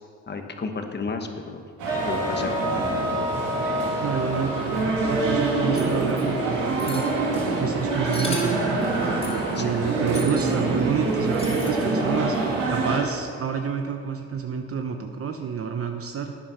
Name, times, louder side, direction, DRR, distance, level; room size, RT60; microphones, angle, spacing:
voice 1, 0.3-1.6 2.1-3.0 9.5-9.9, left 4 dB, 35° left, 6 dB, 1.2 m, -33 dB
sound 1, 1.8-13.0, right 3 dB, 85° right, 2.5 m, -25 dB
sound 2, 1.9-7.9, left 1 dB, 10° right, 2.5 m, -32 dB
voice 2, 4.0-7.0 7.6-8.8 9.5-16.4, right 6 dB, 50° right, 5 dB, 0.9 m, -29 dB
sound 3, 5.7-6.2 6.8-7.1 8.1-8.6 9.2-9.4 10.1-10.5 11.3-11.8, left 2 dB, 20° left, 3.1 m, -37 dB
11.5 x 9.1 x 5.6 m, 2.2 s
cardioid pair, 90°, 30 cm